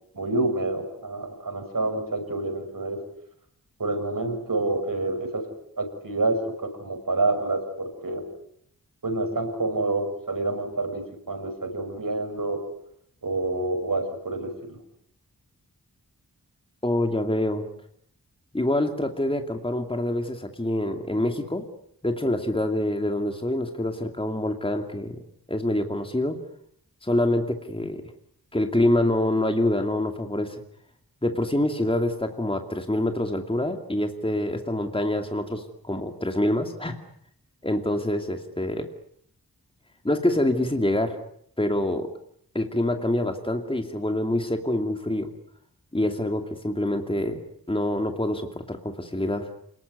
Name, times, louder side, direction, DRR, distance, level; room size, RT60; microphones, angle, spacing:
voice 1, 0.1-3.0 3.8-5.5 5.8-8.2 9.0-12.6 13.2-14.8, right 2 dB, 60° right, 5 dB, 6.9 m, -28 dB
voice 2, 16.8-17.7 18.5-21.7 22.0-25.2 25.5-26.4 27.0-28.0 28.5-30.6 31.2-37.0 37.6-38.9 40.0-41.2 41.6-42.1 42.5-45.3 45.9-49.5, left 1 dB, 15° left, 5 dB, 2.5 m, -26 dB
28.0 x 20.0 x 9.6 m, 0.70 s
wide cardioid pair, 90°, 37 cm